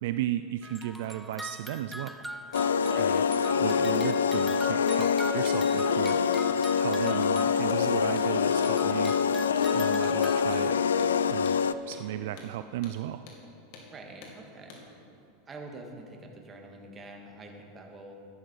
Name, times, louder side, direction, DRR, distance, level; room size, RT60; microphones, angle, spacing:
voice 1, 0.0-2.1 3.0-3.2 3.6-6.2 6.8-9.1 9.7-10.8 11.3-11.6 11.9-13.2, right 13 dB, 65° right, 11 dB, 0.3 m, -34 dB
sound 1, 0.6-8.0 8.4-10.5, equal, ahead, 0.9 m, -42 dB
sound 2, 2.5-11.7, left 6 dB, 80° left, 0.4 m, -25 dB
voice 2, 2.9-3.2 11.7-11.8 13.9-15.0 15.5-18.1, right 2 dB, 25° right, 1 dB, 2.2 m, -46 dB
Hammer, 7.6-7.8 8.2-8.3 8.6-8.8 9.1-9.2 9.6-9.7 10.0-10.2 10.5-10.7 11.0-11.1 11.5-11.6 11.9-12.1 12.4-12.5 12.8-13.0 13.3-13.4 13.7-13.9 14.2-14.4 14.7-14.8, left 4 dB, 55° left, 2.5 m, -49 dB
13.5 x 11.0 x 4.8 m, 2.7 s
hypercardioid pair, 90°, 0 cm